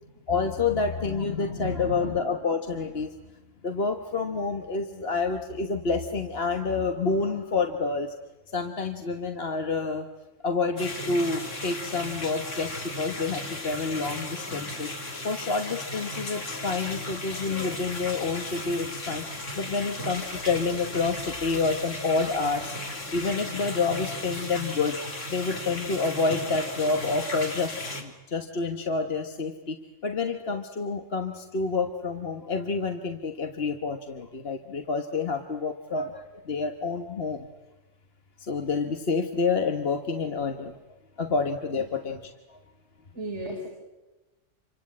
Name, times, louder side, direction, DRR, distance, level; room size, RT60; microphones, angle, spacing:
voice 1, 0.3-3.1 3.6-8.1 8.5-10.1 10.4-14.9 15.2-22.8 23.1-25.0 25.3-29.8 30.0-37.5 38.4-40.8 41.2-42.6, left 4 dB, 55° left, 6 dB, 1.6 m, -28 dB
voice 2, 1.3-2.0 41.8-41.9 43.1-43.7, right 1 dB, 65° right, 0 dB, 4.9 m, -36 dB
sound 1, 10.8-28.0, left 1 dB, 75° left, 3.5 m, -36 dB
28.0 x 24.5 x 8.7 m, 1.1 s
omnidirectional pair, 1.3 m